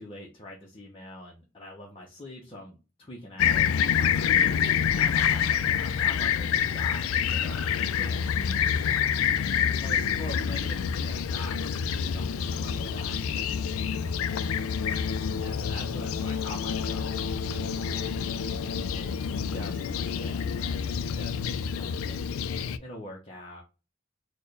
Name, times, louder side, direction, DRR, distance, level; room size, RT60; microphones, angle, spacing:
voice 1, 0.0-8.5 8.8-9.3 9.8-13.5 14.2-14.8 15.4-18.1 18.9-22.4 22.8-23.6, left 1 dB, 25° left, -3 dB, 0.6 m, -45 dB
Fixed-wing aircraft airplane, 3.4-22.8, left 7 dB, 85° left, 0.3 m, -27 dB
4.3 x 2.2 x 3.1 m, 0.32 s
head